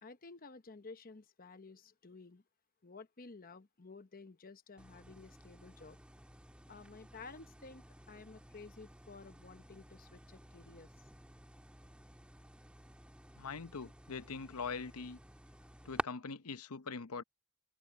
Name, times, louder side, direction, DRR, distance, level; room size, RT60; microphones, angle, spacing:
voice 1, 0.0-2.4 2.8-6.0 6.7-10.9, left 4 dB, 40° left, 1.0 m, -53 dB
sound 1, 4.8-16.0, right 1 dB, 5° right, 1.6 m, -50 dB
voice 2, 13.4-15.2 15.8-17.2, left 5 dB, 80° left, 0.8 m, -42 dB
open air
head